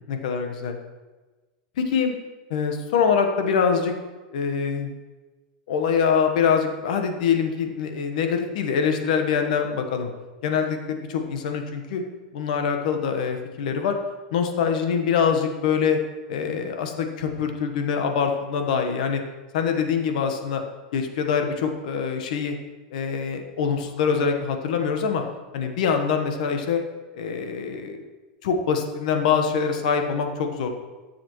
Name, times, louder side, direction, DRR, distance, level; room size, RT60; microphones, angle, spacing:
voice 1, 0.1-0.8 1.8-2.1 2.5-3.9 4.3-4.9 5.7-10.1 10.4-12.0 12.3-14.0 14.3-16.0 16.3-19.2 19.5-20.6 20.9-22.6 22.9-25.2 25.5-26.8 27.1-28.1 28.4-30.7, left 6 dB, 75° left, 5 dB, 1.2 m, -24 dB
13.5 x 7.1 x 3.1 m, 1.2 s
supercardioid pair, 125°, 4 cm